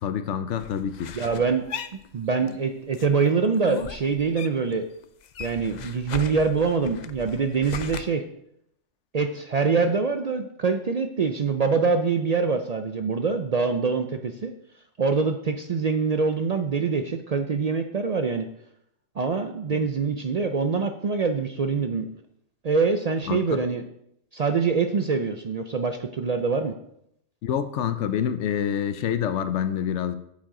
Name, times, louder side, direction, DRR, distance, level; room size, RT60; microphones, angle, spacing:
voice 1, 0.0-1.1 19.7-19.8 23.3-23.4 27.4-30.2, left 9 dB, 80° left, 11 dB, 0.9 m, -27 dB
sound 1, 0.6-2.6 2.9-4.8 5.0-8.0, left 7 dB, 55° left, 0.5 m, -38 dB
voice 2, 1.1-1.6 2.1-4.8 5.4-8.2 9.1-14.5 15.0-18.5 19.2-22.1 22.6-23.8 24.3-26.7, right 5 dB, 55° right, 7 dB, 0.4 m, -24 dB
8.7 x 7.4 x 3.8 m, 0.76 s
omnidirectional pair, 1.2 m